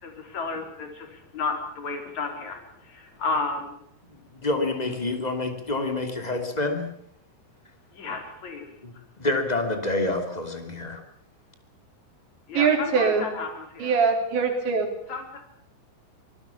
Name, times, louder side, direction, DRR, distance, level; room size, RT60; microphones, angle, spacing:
voice 1, 0.0-3.8 7.9-8.7 12.5-14.0 15.1-15.6, left 4 dB, 40° left, 5 dB, 5.0 m, -33 dB
voice 2, 4.3-6.8 8.8-11.0, left 2 dB, 10° left, 5 dB, 2.2 m, -27 dB
voice 3, 12.5-13.3 13.8-14.9, right 5 dB, 80° right, 4 dB, 6.0 m, -22 dB
25.5 x 19.5 x 7.2 m, 0.67 s
omnidirectional pair, 5.0 m